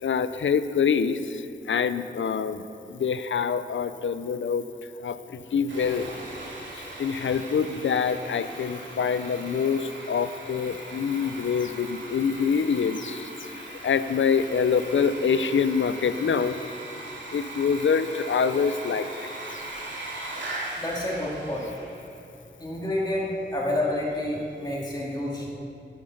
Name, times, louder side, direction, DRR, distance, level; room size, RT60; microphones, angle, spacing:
voice 1, 0.0-4.7 5.0-6.1 7.0-13.3 13.6-16.6 17.3-19.6, left 6 dB, 75° left, 12 dB, 0.5 m, -26 dB
Sawing, 5.7-22.1, right 1 dB, 70° right, 3.1 m, -39 dB
voice 2, 20.8-21.7 22.6-25.5, left 1 dB, 20° left, -4 dB, 2.0 m, -29 dB
10.5 x 7.7 x 6.5 m, 2.6 s
wide cardioid pair, 85°, 20 cm